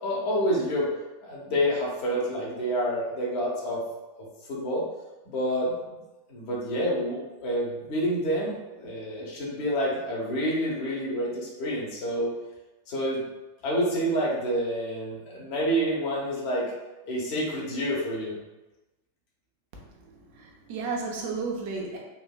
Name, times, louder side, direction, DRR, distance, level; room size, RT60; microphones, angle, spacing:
voice 1, 0.0-0.9 1.2-3.8 4.5-4.8 5.2-5.9 6.3-12.4 12.9-13.3 13.6-16.7 17.0-18.3, equal, 45° left, -4 dB, 1.1 m, -28 dB
voice 2, 20.1-22.0, right 4 dB, 50° right, -1 dB, 0.7 m, -33 dB
3.9 x 2.9 x 2.2 m, 1.1 s
figure-of-eight pair, 90°, 0 cm